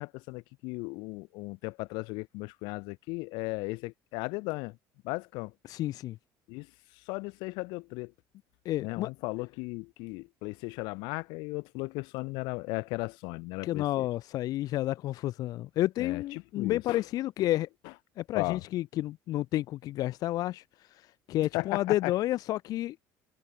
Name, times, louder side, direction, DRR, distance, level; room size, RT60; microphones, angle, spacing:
voice 1, 0.0-4.8 5.0-5.5 6.5-6.7 7.1-8.1 8.8-14.1 16.0-17.0 18.3-18.6 21.5-22.1, left 26 dB, 85° left, 4.9 m, -36 dB
voice 2, 5.6-6.2 8.6-9.1 13.6-17.7 18.2-20.6 20.9-23.0, left 15 dB, 60° left, 2.8 m, -30 dB
cardioid pair, 140°, 7 cm